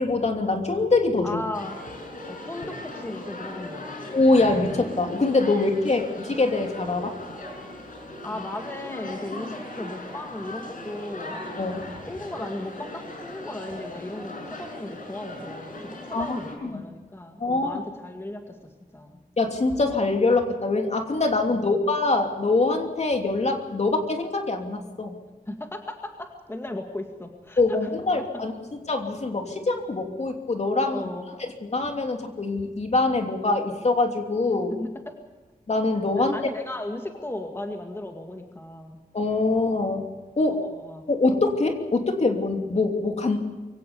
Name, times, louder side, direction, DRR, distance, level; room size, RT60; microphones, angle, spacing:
voice 1, 0.0-1.4 4.1-7.1 11.6-11.8 16.1-16.8 17.4-17.8 19.4-25.1 27.6-28.5 28.9-31.1 31.4-34.7 35.7-36.4 39.1-40.1 40.4-40.6 41.1-43.4, left 3 dB, 45° left, 4 dB, 3.0 m, -24 dB
voice 2, 1.2-1.8 2.3-4.1 8.2-11.4 12.1-19.2 25.5-27.8 28.2-28.5 30.9-31.4 34.5-35.2 36.2-39.0 40.5-41.1, left 1 dB, 15° left, 4 dB, 2.0 m, -36 dB
sound 1, 1.5-16.5, left 1 dB, 60° left, 6.2 m, -38 dB
24.0 x 17.0 x 7.0 m, 1.2 s
wide cardioid pair, 95°, 15 cm